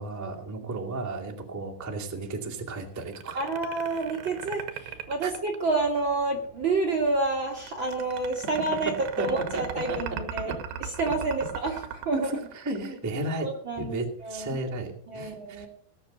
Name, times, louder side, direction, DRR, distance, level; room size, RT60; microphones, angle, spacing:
voice 1, 0.0-3.4 5.2-5.3 9.2-9.3 9.5-9.6 9.9-10.0 10.4-10.5 12.1-13.5 13.8-15.7, right 2 dB, 10° right, -1 dB, 0.8 m, -33 dB
sound 1, 3.0-6.1 7.6-13.1, right 8 dB, 70° right, 2.8 m, -38 dB
voice 2, 3.3-12.3 13.4-14.6 15.1-15.7, right 3 dB, 45° right, 1 dB, 1.6 m, -29 dB
19.0 x 7.3 x 6.6 m, 0.63 s
omnidirectional pair, 4.7 m